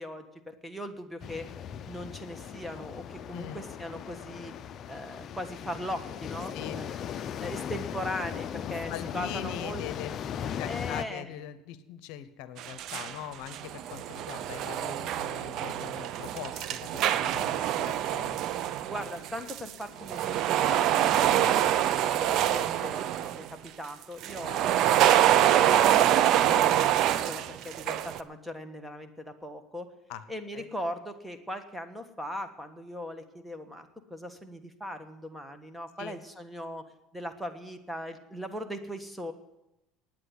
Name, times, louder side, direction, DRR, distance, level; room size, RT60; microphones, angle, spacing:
voice 1, 0.0-1.5 1.9-7.0 7.4-9.8 10.6-11.3 18.8-25.9 26.3-29.9 30.3-36.8 37.1-39.3, equal, 5° right, 7 dB, 1.4 m, -39 dB
sound 1, 1.2-11.0, left 8 dB, 45° left, 0.5 m, -38 dB
voice 2, 8.7-18.4 21.3-21.6 30.1-30.2 30.5-30.7 36.0-36.2, left 11 dB, 75° left, 13 dB, 0.8 m, -42 dB
sound 2, 12.6-13.1 13.5-19.7 20.0-23.5 24.2-28.2, right 11 dB, 60° right, 0.6 m, -25 dB
9.9 x 8.9 x 9.6 m, 0.93 s
supercardioid pair, 110°, 0 cm